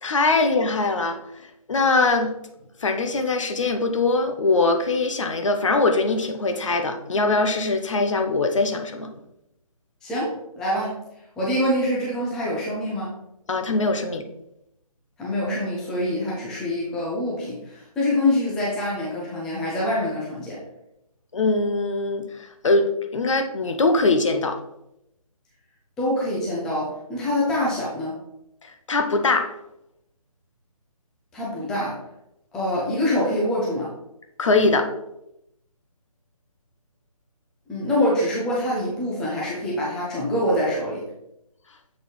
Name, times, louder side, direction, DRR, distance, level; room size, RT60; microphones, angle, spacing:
voice 1, 0.0-1.2 1.7-2.3 2.8-9.1 13.5-14.3 21.3-24.6 28.6-29.5 34.4-34.9, left 3 dB, 55° left, 6 dB, 0.8 m, -22 dB
voice 2, 10.0-11.0 11.4-13.2 15.2-20.6 26.0-28.2 31.3-32.0 32.5-33.9 37.7-41.0, left 1 dB, 5° left, -6 dB, 0.5 m, -25 dB
7.3 x 4.0 x 3.2 m, 0.84 s
figure-of-eight pair, 150°, 19 cm